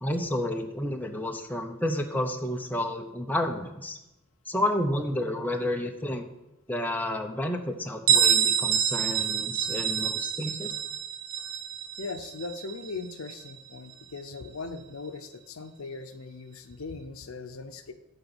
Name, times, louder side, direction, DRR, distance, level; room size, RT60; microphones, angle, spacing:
voice 1, 0.0-4.0 4.5-6.2 6.7-10.7, left 1 dB, 10° left, 3 dB, 0.7 m, -30 dB
Bell, 8.1-13.6, right 9 dB, 90° right, 0.7 m, -27 dB
voice 2, 12.0-17.9, left 3 dB, 70° left, 8 dB, 0.7 m, -39 dB
11.0 x 3.9 x 7.0 m, 0.93 s
head